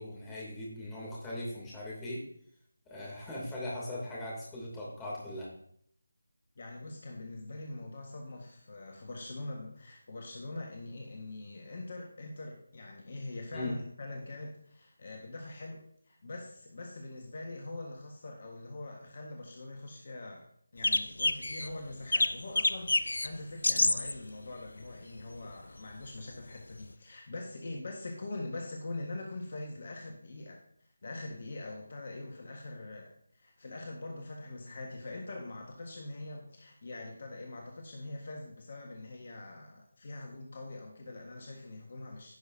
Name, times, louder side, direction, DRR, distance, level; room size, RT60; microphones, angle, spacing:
voice 1, 0.0-2.2 2.9-5.5 13.5-13.7, left 1 dB, 10° left, -5 dB, 2.9 m, -39 dB
voice 2, 6.6-20.5 20.7-30.6 31.0-42.4, left 2 dB, 45° left, 1 dB, 1.5 m, -43 dB
sound 1, 20.8-21.7 22.1-23.3 23.6-24.1 25.4-25.5 26.8-26.9, left 2 dB, 65° left, 0.6 m, -27 dB
16.0 x 6.2 x 2.8 m, 0.66 s
figure-of-eight pair, 160°, 0 cm